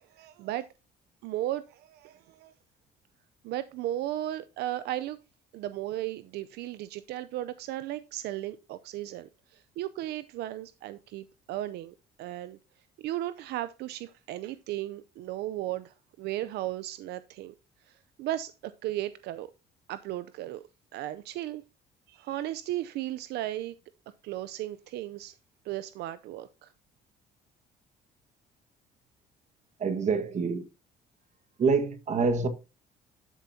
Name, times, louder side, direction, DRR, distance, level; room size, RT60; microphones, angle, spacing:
voice 1, 0.1-0.7 1.2-2.5 3.4-5.2 5.5-12.6 13.0-17.5 17.9-19.5 19.9-20.6 20.9-21.6 22.1-23.7 24.2-25.3 25.6-26.7, right 14 dB, 75° right, 0.5 m, -35 dB
voice 2, 29.8-30.7 31.6-32.5, right 4 dB, 45° right, 1.6 m, -26 dB
12.0 x 6.9 x 2.8 m
cardioid pair, 110°, 17 cm